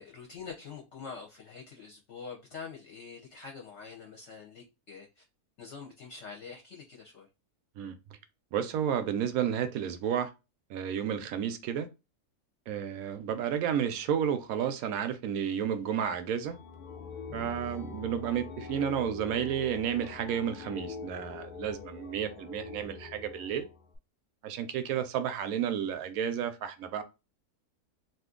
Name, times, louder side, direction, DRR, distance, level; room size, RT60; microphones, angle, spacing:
voice 1, 0.0-5.2 5.6-7.3, left 5 dB, 60° left, 0.8 m, -45 dB
voice 2, 8.5-10.3 10.7-11.9 12.7-16.6 17.3-23.7 24.4-27.0, right 9 dB, 75° right, 1.0 m, -31 dB
sound 1, 16.4-24.0, left 5 dB, 80° left, 0.4 m, -44 dB
2.6 x 2.5 x 3.6 m
omnidirectional pair, 1.6 m